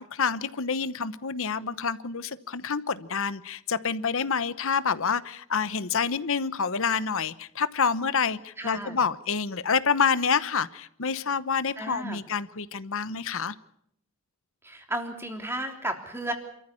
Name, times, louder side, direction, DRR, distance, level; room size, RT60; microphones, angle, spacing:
voice 1, 0.0-13.5, left 6 dB, 65° left, 15 dB, 1.0 m, -28 dB
voice 2, 8.6-9.0 11.8-12.2 14.6-16.3, right 1 dB, 10° right, 5 dB, 3.4 m, -33 dB
27.5 x 14.5 x 9.8 m, 0.73 s
head